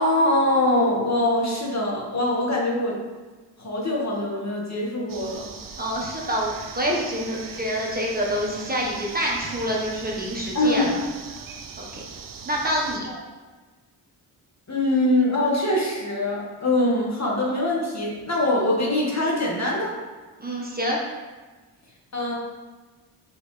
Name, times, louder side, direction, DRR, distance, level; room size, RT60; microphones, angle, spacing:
voice 1, 0.0-3.0 3.6-5.5 10.5-10.9 13.1-13.2 14.7-19.9 22.1-22.3, left 1 dB, 40° left, -3 dB, 1.9 m, -23 dB
sound 1, 5.1-13.0, right 5 dB, 50° right, 0.8 m, -39 dB
voice 2, 5.8-11.0 11.8-12.0 12.4-13.1 20.4-21.0, equal, 20° right, -3 dB, 1.4 m, -27 dB
6.1 x 5.3 x 3.4 m, 1.3 s
cardioid pair, 70°, 43 cm